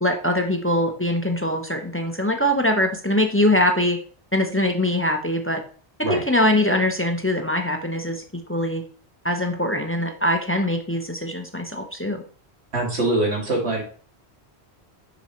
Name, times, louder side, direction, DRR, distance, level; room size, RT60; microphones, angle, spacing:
voice 1, 0.0-4.0 4.3-5.6 6.1-8.2 8.5-8.8 9.2-12.2, left 1 dB, 15° left, 4 dB, 0.7 m, -22 dB
voice 2, 12.7-13.8, right 2 dB, 70° right, -2 dB, 2.7 m, -23 dB
7.3 x 6.1 x 3.1 m, 0.42 s
omnidirectional pair, 1.1 m